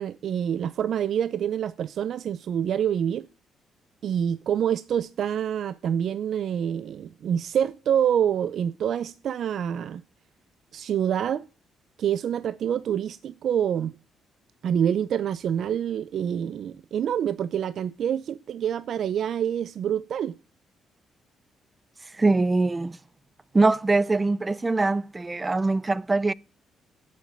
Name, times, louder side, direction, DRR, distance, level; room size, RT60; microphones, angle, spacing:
voice 1, 0.0-3.3 4.0-10.0 10.7-11.5 12.0-13.9 14.6-20.4, right 9 dB, 65° right, 0.6 m, -26 dB
voice 2, 22.2-23.0 23.5-26.3, right 3 dB, 20° right, 0.6 m, -23 dB
11.5 x 8.5 x 9.2 m
cardioid pair, 90°, 0 cm